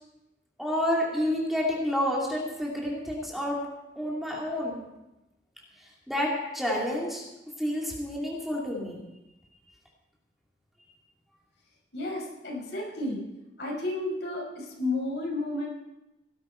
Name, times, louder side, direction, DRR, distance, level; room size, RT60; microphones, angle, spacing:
voice 1, 0.6-3.6 4.0-4.8 6.1-7.2 7.6-9.0, left 1 dB, ahead, -3 dB, 2.7 m, -29 dB
voice 2, 11.9-13.2 13.6-15.7, left 2 dB, 75° left, -2 dB, 5.5 m, -32 dB
18.0 x 12.0 x 4.5 m, 0.96 s
head